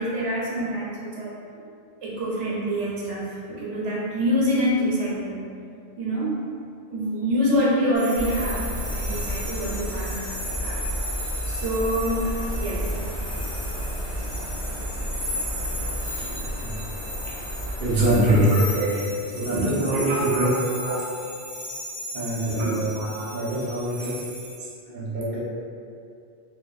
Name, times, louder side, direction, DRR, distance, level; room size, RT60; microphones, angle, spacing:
voice 1, 0.0-1.3 2.0-5.4 6.0-6.4 6.9-10.4 10.6-10.8 11.5-12.9 17.2-17.3 18.1-21.1 22.6-23.3 24.0-24.1 24.6-24.7, equal, 85° right, -5 dB, 1.0 m, -26 dB
sound 1, 7.9-24.5, left 1 dB, 10° left, 0.7 m, -36 dB
sound 2, 8.1-18.4, equal, 75° left, 1.1 m, -31 dB
voice 2, 17.8-18.5 19.3-20.6 22.1-24.2 24.9-25.4, right 1 dB, 55° right, -8 dB, 0.9 m, -24 dB
2.7 x 2.2 x 2.3 m, 2.4 s
omnidirectional pair, 1.2 m